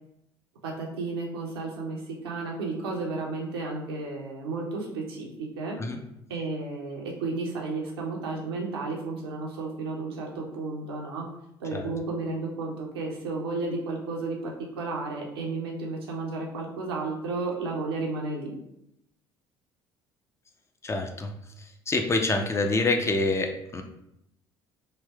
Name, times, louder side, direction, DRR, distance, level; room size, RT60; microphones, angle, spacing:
voice 1, 0.6-5.8 6.3-11.3 11.6-18.5, right 3 dB, 70° right, -1 dB, 0.8 m, -33 dB
voice 2, 20.8-21.3 21.9-23.8, left 2 dB, 20° left, 4 dB, 0.5 m, -26 dB
3.3 x 2.6 x 3.3 m, 0.80 s
figure-of-eight pair, 55°, 13 cm